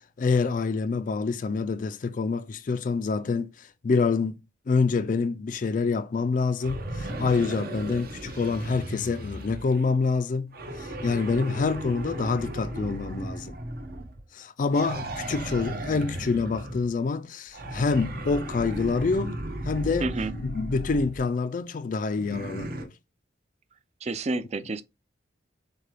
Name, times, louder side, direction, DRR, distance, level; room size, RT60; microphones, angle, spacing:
voice 1, 0.2-4.3 4.7-10.5 10.8-13.6 14.3-19.4 19.6-20.1 20.4-22.9, left 4 dB, 45° left, 0.3 m, -26 dB
sound 1, 6.6-9.9 10.5-14.2 14.7-16.9 17.5-21.2 22.1-22.8, right 1 dB, 55° right, 0.9 m, -35 dB
voice 2, 20.0-20.3 24.0-24.8, right 2 dB, 35° right, 0.4 m, -29 dB
6.4 x 2.3 x 3.3 m
head